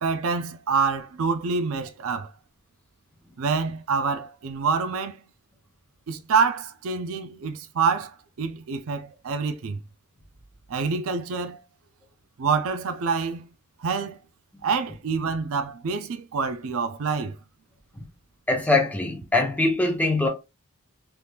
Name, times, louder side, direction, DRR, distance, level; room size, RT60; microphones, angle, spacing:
voice 1, 0.0-2.3 3.4-5.2 6.1-9.8 10.7-11.6 12.4-13.5 13.8-14.2 14.6-17.4, right 5 dB, 65° right, 0.4 m, -26 dB
voice 2, 18.5-20.3, left 2 dB, 5° left, 0.7 m, -22 dB
3.4 x 2.9 x 2.3 m
head